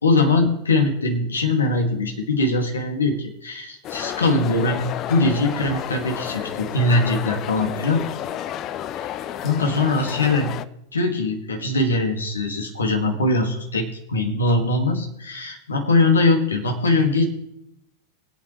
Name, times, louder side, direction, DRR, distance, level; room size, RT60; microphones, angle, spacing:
voice 1, 0.0-4.8 5.1-8.1 9.4-10.5 10.9-17.2, left 2 dB, 75° left, 2 dB, 2.1 m, -21 dB
sound 1, 3.8-10.7, left 11 dB, 35° left, 0.5 m, -31 dB
23.0 x 8.7 x 3.2 m, 0.80 s
figure-of-eight pair, 90°, 0 cm